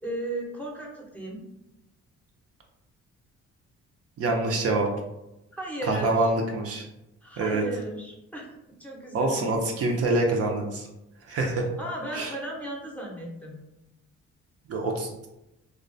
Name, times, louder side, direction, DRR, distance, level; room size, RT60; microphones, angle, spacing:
voice 1, 0.0-1.4 5.5-6.3 7.2-8.5 8.8-9.5 11.8-13.6, right 1 dB, 5° left, -3 dB, 0.6 m, -35 dB
voice 2, 4.2-4.9 5.9-6.8 7.4-7.6 9.1-10.9 11.3-11.7 12.1-12.3 14.7-15.3, right 2 dB, 50° right, 1 dB, 0.5 m, -25 dB
2.2 x 2.2 x 2.5 m, 0.92 s
cardioid pair, 90°, 30 cm